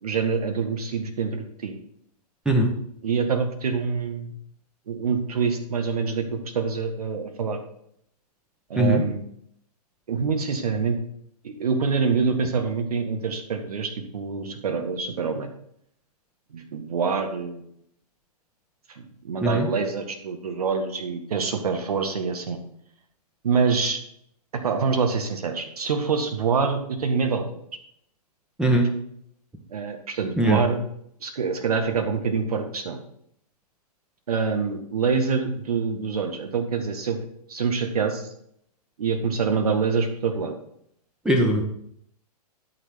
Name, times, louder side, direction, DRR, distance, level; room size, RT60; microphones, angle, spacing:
voice 1, 0.0-1.8 3.0-4.3 4.9-7.6 8.7-9.2 10.1-11.0 11.4-15.5 16.5-17.6 18.9-22.6 23.4-24.0 24.5-27.4 29.7-30.8 31.2-33.0 34.3-37.2 37.5-38.3 39.0-40.6, right 5 dB, 65° right, 5 dB, 1.9 m, -26 dB
voice 2, 41.2-41.6, right 1 dB, 5° right, 2 dB, 1.3 m, -20 dB
12.5 x 4.6 x 6.0 m, 0.70 s
figure-of-eight pair, 125°, 21 cm